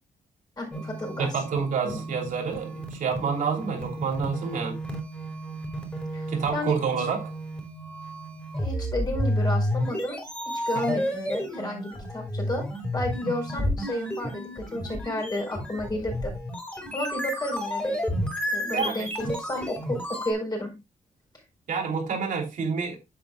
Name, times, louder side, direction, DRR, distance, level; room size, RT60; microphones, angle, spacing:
voice 1, 0.6-1.3 1.8-2.0 6.1-6.2 6.5-6.8 8.6-10.2 10.4-12.6 12.9-16.3 16.9-18.0 18.5-20.7, left 1 dB, 30° left, 4.9 m, -32 dB
sound 1, 0.7-20.3, equal, 10° left, 4.2 m, -32 dB
voice 2, 1.2-4.8 6.3-7.3 10.9-11.0 18.7-19.1 21.7-23.0, right 5 dB, 80° right, 3.1 m, -28 dB
10.5 x 7.7 x 2.3 m
wide cardioid pair, 125°, 14 cm